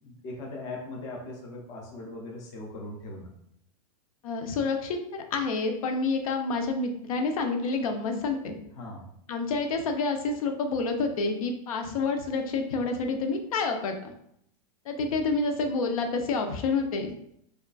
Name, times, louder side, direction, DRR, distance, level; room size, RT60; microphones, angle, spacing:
voice 1, 0.0-3.3 8.7-9.1, left 2 dB, 20° left, -1 dB, 0.5 m, -39 dB
voice 2, 4.2-8.5 9.3-14.1 14.9-17.2, left 3 dB, 70° left, 5 dB, 0.6 m, -28 dB
4.9 x 2.4 x 2.3 m, 0.73 s
supercardioid pair, 180°, 19 cm